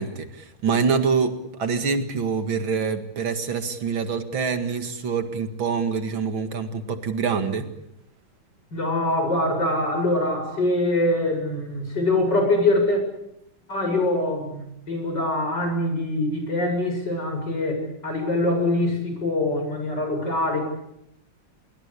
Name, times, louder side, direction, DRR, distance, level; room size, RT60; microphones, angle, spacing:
voice 1, 0.0-7.7, right 5 dB, 70° right, 8 dB, 2.7 m, -25 dB
voice 2, 8.7-13.0 13.7-20.6, left 1 dB, 55° left, 4 dB, 8.2 m, -24 dB
26.0 x 22.0 x 8.5 m, 0.80 s
omnidirectional pair, 2.3 m